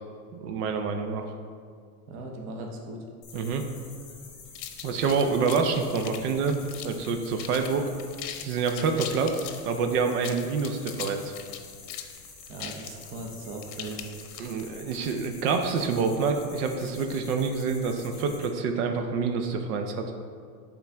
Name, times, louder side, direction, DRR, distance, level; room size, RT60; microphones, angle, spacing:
voice 1, 0.4-1.3 3.3-3.6 4.8-7.9 8.4-11.3 14.4-20.0, right 5 dB, 70° right, 6 dB, 0.8 m, -27 dB
voice 2, 2.1-3.1 12.5-14.1, right 2 dB, 30° right, 1 dB, 0.6 m, -38 dB
sound 1, 3.2-18.5, left 4 dB, 30° left, 1.6 m, -48 dB
sound 2, 4.5-7.1 7.4-7.7 8.0-9.6 10.1-14.7, left 10 dB, 70° left, 0.8 m, -39 dB
8.6 x 3.8 x 3.5 m, 2.1 s
supercardioid pair, 150°, 47 cm